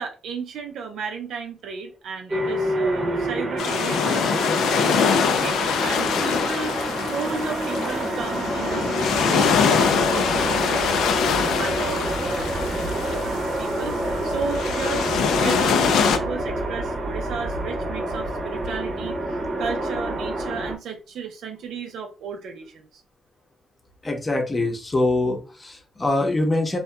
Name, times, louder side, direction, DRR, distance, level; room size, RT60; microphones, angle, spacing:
voice 1, 0.0-4.7 5.3-6.8 7.1-12.5 12.7-23.0, right 5 dB, 75° right, 0.5 m, -34 dB
sound 1, 2.3-16.5, equal, 20° right, 0.5 m, -34 dB
sound 2, 2.3-20.8, right 1 dB, 45° right, 0.8 m, -28 dB
sound 3, 3.6-16.2, left 6 dB, 80° left, 0.3 m, -24 dB
voice 2, 24.0-26.8, left 2 dB, 25° left, 0.7 m, -24 dB
2.7 x 2.2 x 2.2 m
cardioid pair, 90°, 0 cm